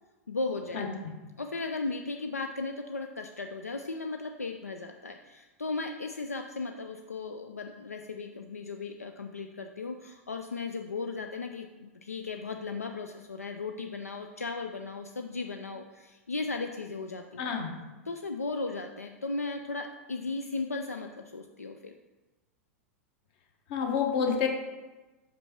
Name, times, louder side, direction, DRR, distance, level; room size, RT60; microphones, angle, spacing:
voice 1, 0.3-0.8 1.4-17.5 18.1-21.9, left 3 dB, 85° left, 5 dB, 0.4 m, -36 dB
voice 2, 17.4-17.7 23.7-24.5, left 6 dB, 50° left, 2 dB, 1.1 m, -28 dB
5.4 x 5.2 x 4.4 m, 1.2 s
figure-of-eight pair, 95°, 8 cm